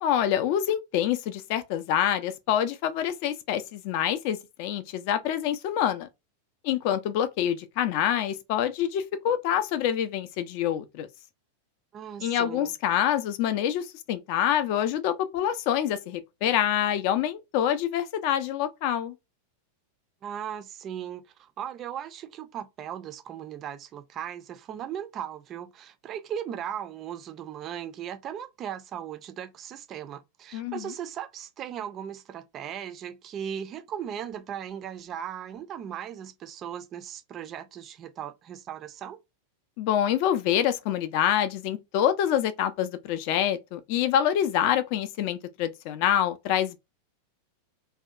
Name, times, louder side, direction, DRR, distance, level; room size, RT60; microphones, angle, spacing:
voice 1, 0.0-6.1 6.6-11.1 12.2-19.1 30.5-30.9 39.8-46.8, left 10 dB, 45° left, 0.4 m, -26 dB
voice 2, 11.9-12.7 20.2-39.2, right 9 dB, 30° right, 0.4 m, -37 dB
2.7 x 2.2 x 2.3 m
figure-of-eight pair, 90°, 0 cm